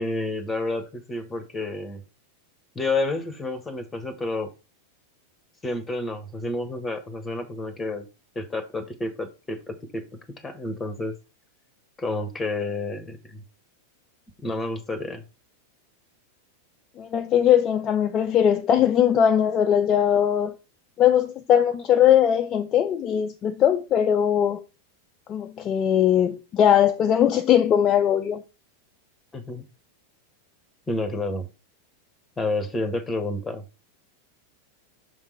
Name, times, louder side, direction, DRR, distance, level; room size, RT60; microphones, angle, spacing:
voice 1, 0.0-2.0 2.7-4.5 5.6-8.1 8.3-10.0 10.4-11.2 12.0-13.4 14.4-15.2 29.3-29.6 30.9-31.5 32.4-33.6, left 2 dB, 10° left, 1.1 m, -29 dB
voice 2, 17.0-20.5 21.0-24.6 25.3-28.4, left 9 dB, 30° left, 0.4 m, -20 dB
6.1 x 3.6 x 4.6 m
figure-of-eight pair, 90°, 0 cm